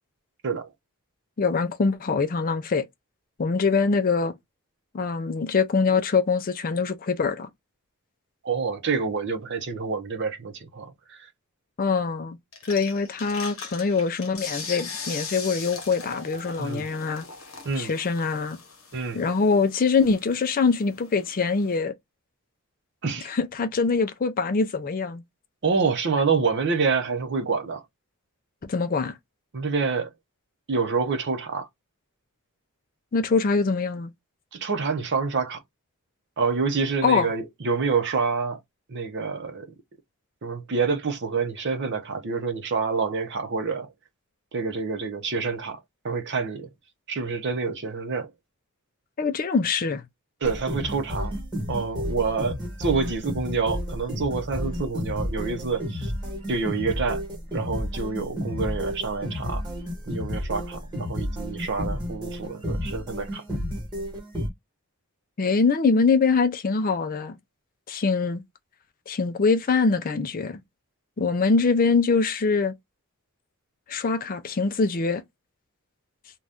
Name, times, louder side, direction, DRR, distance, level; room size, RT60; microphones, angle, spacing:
voice 1, 1.4-2.8 3.4-4.3 4.9-7.5 11.8-12.4 12.7-17.3 17.8-18.6 19.1-21.9 23.2-25.2 28.6-29.1 33.1-34.1 37.0-37.3 49.2-50.0 65.4-67.4 67.9-68.4 69.1-70.6 71.2-72.7 73.9-75.2, left 4 dB, 40° left, 0.4 m, -23 dB
voice 2, 8.4-11.3 16.6-16.9 17.6-17.9 18.9-19.2 23.0-23.3 25.6-27.8 29.5-30.1 30.7-31.7 34.5-35.6 36.4-38.6 38.9-39.7 40.4-43.9 44.5-45.8 46.0-46.7 47.1-48.3 50.4-51.4 51.7-56.1 56.5-57.2 57.5-59.6 60.1-63.4, right 4 dB, 50° right, 0.6 m, -27 dB
sound 1, 12.5-21.8, left 5 dB, 65° left, 1.0 m, -40 dB
sound 2, 50.4-64.5, equal, 20° right, 1.2 m, -31 dB
2.6 x 2.3 x 3.4 m
head